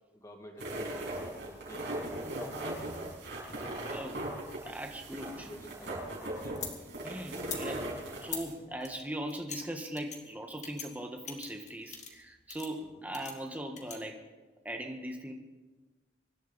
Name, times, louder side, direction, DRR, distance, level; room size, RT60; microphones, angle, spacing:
voice 1, 0.1-1.1 1.4-1.9 2.4-3.3 5.2-6.9 12.8-13.0, equal, 20° left, 1 dB, 2.1 m, -50 dB
sound 1, 0.6-8.5, right 1 dB, 65° right, 6.2 m, -39 dB
voice 2, 3.9-4.2 4.6-5.5 7.0-7.9 8.2-14.2 14.6-15.3, right 1 dB, 10° right, 3 dB, 1.4 m, -40 dB
sound 2, 5.8-6.8 7.3-7.6 8.2-8.5 8.8-9.6 10.0-10.2 10.6-10.9 11.3-12.2 12.5-12.7 13.1-14.0, left 6 dB, 40° left, 2.1 m, -42 dB
24.5 x 11.5 x 4.0 m, 1.3 s
head